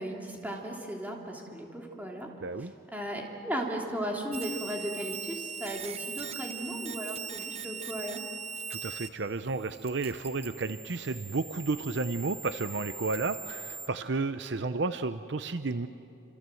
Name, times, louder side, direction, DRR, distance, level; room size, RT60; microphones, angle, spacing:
voice 1, 0.0-2.3 2.6-8.2, equal, 10° right, -1 dB, 3.1 m, -36 dB
voice 2, 2.4-2.7 8.7-15.9, right 3 dB, 60° right, 11 dB, 0.6 m, -32 dB
sound 1, 4.3-9.1 9.4-13.9, right 6 dB, 30° right, 0.9 m, -41 dB
28.5 x 26.5 x 7.8 m, 2.8 s
head